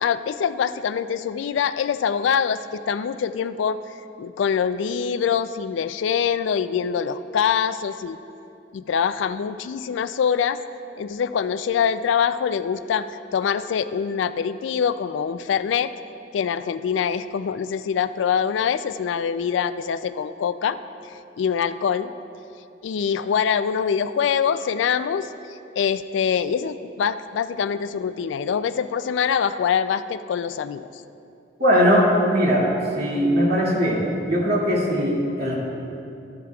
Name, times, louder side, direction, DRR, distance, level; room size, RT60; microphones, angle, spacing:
voice 1, 0.0-3.8 4.2-8.2 8.7-10.6 11.0-15.9 16.3-20.8 21.4-22.1 22.8-25.3 25.8-30.9, left 7 dB, 75° left, 13 dB, 0.3 m, -24 dB
voice 2, 31.6-32.7 33.0-35.5, equal, 60° right, -5 dB, 2.3 m, -20 dB
13.0 x 11.0 x 2.3 m, 2.6 s
head